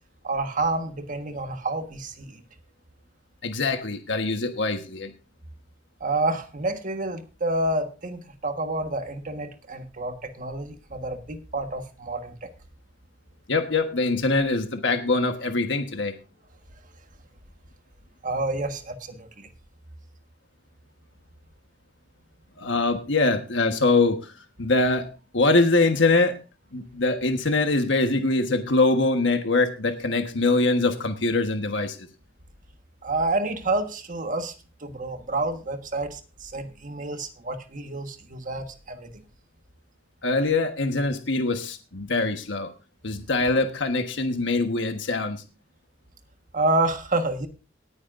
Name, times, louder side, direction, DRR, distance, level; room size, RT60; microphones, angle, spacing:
voice 1, 0.2-2.4 6.0-12.5 18.2-19.5 33.0-34.5 34.8-39.2 46.5-47.5, right 2 dB, 45° right, 7 dB, 1.5 m, -29 dB
voice 2, 3.4-5.1 13.5-16.1 22.6-24.3 24.6-25.1 25.3-26.4 26.7-32.0 40.2-42.7 43.0-45.4, left 3 dB, 75° left, 6 dB, 1.3 m, -23 dB
19.0 x 9.5 x 2.6 m, 0.32 s
head